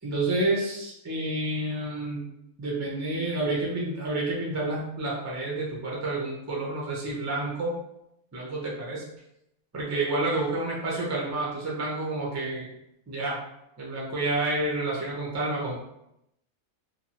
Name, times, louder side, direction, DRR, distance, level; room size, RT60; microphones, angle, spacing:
voice 1, 0.0-2.2 2.6-7.7 8.3-9.0 9.7-12.7 13.1-13.4 13.8-15.8, right 2 dB, 25° right, -4 dB, 0.4 m, -29 dB
2.7 x 2.3 x 2.9 m, 0.82 s
omnidirectional pair, 1.5 m